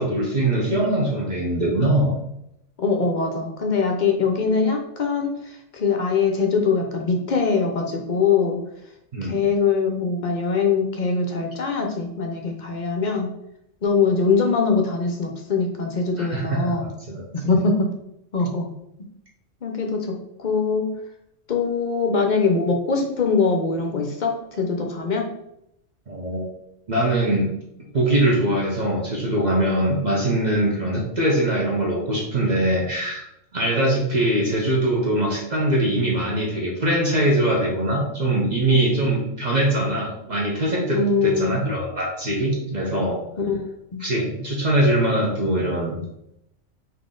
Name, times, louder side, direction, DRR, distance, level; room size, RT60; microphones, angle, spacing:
voice 1, 0.0-2.1 9.1-9.5 16.2-17.2 26.1-26.4 26.9-27.5 27.9-33.3 33.5-43.2 44.0-46.0, right 1 dB, 40° right, -3 dB, 0.8 m, -22 dB
voice 2, 2.8-5.3 5.7-8.6 9.2-13.3 13.8-16.9 17.3-17.9 18.3-18.7 19.6-20.1 20.4-20.9 21.5-25.3 40.9-41.6 43.5-44.0, left 4 dB, 50° left, 3 dB, 0.6 m, -22 dB
3.8 x 2.8 x 3.7 m, 0.80 s
omnidirectional pair, 1.3 m